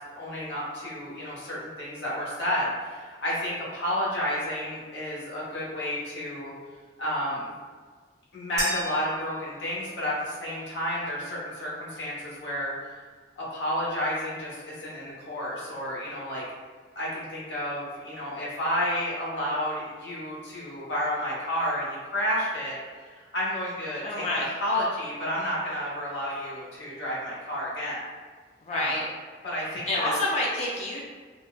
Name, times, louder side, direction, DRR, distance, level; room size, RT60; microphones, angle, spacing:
voice 1, 0.1-6.5 7.0-7.5 8.3-12.7 13.4-16.4 17.0-22.8 23.1-28.0 28.7-28.9 29.4-30.2, equal, 80° left, -6 dB, 0.9 m, -31 dB
sound 1, 8.6-10.0, right 1 dB, 35° right, 0.6 m, -35 dB
voice 2, 24.0-24.5 28.6-29.1 29.9-31.0, left 2 dB, 40° left, -3 dB, 0.3 m, -28 dB
3.6 x 2.1 x 2.2 m, 1.6 s
head